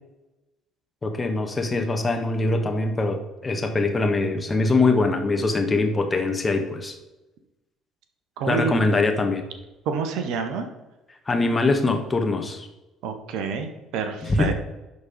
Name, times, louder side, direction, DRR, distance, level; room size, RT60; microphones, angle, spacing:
voice 1, 1.0-7.0 8.5-9.4 11.3-12.7 14.2-14.5, left 3 dB, 25° left, 4 dB, 1.5 m, -23 dB
voice 2, 8.4-8.7 9.9-10.7 13.0-14.5, right 5 dB, 60° right, 7 dB, 1.0 m, -28 dB
11.5 x 4.2 x 5.0 m, 1.0 s
figure-of-eight pair, 50°, 0 cm